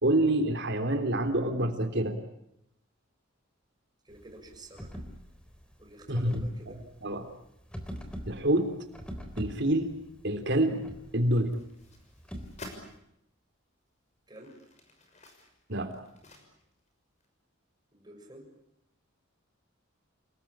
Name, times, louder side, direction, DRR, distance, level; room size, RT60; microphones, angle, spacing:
voice 1, 0.0-2.2 6.1-6.5 7.0-7.2 8.3-8.7 9.4-9.9 10.2-10.9 11.1-11.6 15.7-16.0, right 1 dB, 60° right, 7 dB, 3.3 m, -27 dB
sound 1, 4.1-13.0, equal, 5° left, 3.7 m, -44 dB
voice 2, 4.1-4.9 5.8-6.8 14.3-14.5 17.9-18.5, right 1 dB, 20° right, 2 dB, 6.9 m, -50 dB
sound 2, 11.3-12.9 13.6-13.7 14.2-16.9 17.2-17.3, left 2 dB, 35° left, 6.3 m, -50 dB
29.0 x 20.0 x 8.8 m, 0.78 s
head